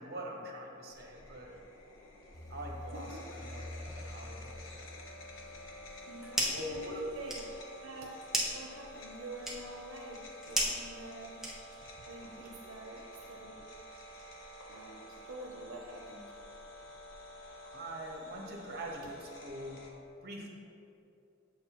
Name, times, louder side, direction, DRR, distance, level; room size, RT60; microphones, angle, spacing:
voice 1, 0.0-1.6 2.5-3.1 3.4-3.6 3.9-4.5 6.5-7.0 12.2-12.5 13.9-14.0 17.7-19.8 20.2-20.5, equal, 50° right, 0 dB, 1.1 m, -43 dB
sound 1, 0.9-19.9, left 1 dB, 70° left, 1.0 m, -50 dB
sound 2, 2.3-6.4, left 1 dB, 15° left, 0.5 m, -47 dB
sound 3, 5.9-6.7 7.0-11.9, right 1 dB, ahead, 1.0 m, -36 dB
voice 2, 6.1-7.4 7.8-8.1 8.5-11.4 12.1-13.7 14.7-16.3, right 2 dB, 85° right, -1 dB, 0.7 m, -47 dB
7.6 x 6.6 x 3.0 m, 2.7 s
head